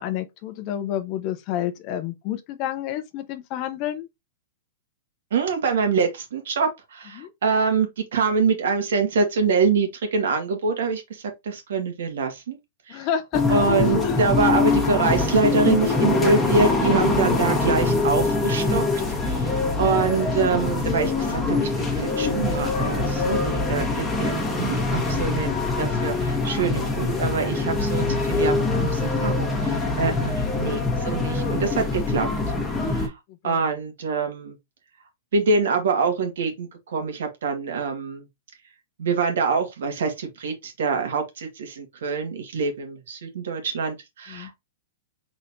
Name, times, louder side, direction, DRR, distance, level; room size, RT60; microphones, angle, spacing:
voice 1, 0.0-4.1 7.1-7.3 12.9-13.6 13.9-14.2 33.3-33.6 44.3-44.5, left 10 dB, 35° left, 0.7 m, -29 dB
voice 2, 5.3-11.0 11.4-12.6 12.9-13.1 13.5-19.5 19.8-32.3 32.9-33.1 33.4-34.5 35.3-38.2 39.0-44.6, right 4 dB, 80° right, 1.8 m, -25 dB
sound 1, 13.3-33.1, left 3 dB, 10° left, 1.3 m, -23 dB
4.1 x 4.0 x 2.6 m
hypercardioid pair, 155°, 0 cm